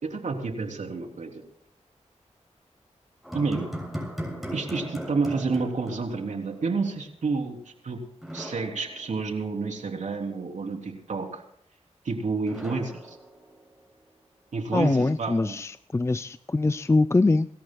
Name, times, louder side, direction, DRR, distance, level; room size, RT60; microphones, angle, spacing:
voice 1, 0.0-1.4 3.3-3.7 4.5-8.0 8.3-11.4 12.1-13.2 14.5-15.6, right 4 dB, 75° right, 2 dB, 3.4 m, -29 dB
sound 1, 3.2-6.6 6.9-7.0 8.2-9.6 12.5-14.0, equal, ahead, 7.3 m, -38 dB
voice 2, 14.7-17.5, left 3 dB, 20° left, 13 dB, 0.4 m, -23 dB
28.0 x 14.0 x 2.3 m, 0.69 s
cardioid pair, 50°, 12 cm